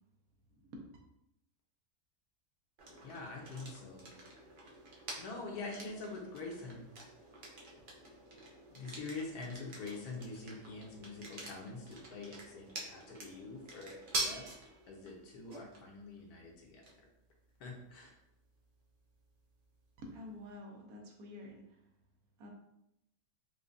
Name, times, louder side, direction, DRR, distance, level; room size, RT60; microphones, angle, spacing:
voice 1, 0.5-0.9 20.0-21.8 22.4-22.5, left 1 dB, 75° right, 1 dB, 1.1 m, -49 dB
sound 1, 2.8-20.5, right 2 dB, 50° right, 0.6 m, -47 dB
voice 2, 3.0-4.1 5.2-6.8 8.7-14.4 14.9-16.8 17.6-18.1, left 3 dB, 80° left, -1 dB, 1.3 m, -45 dB
4.9 x 2.2 x 2.5 m, 0.83 s
omnidirectional pair, 1.6 m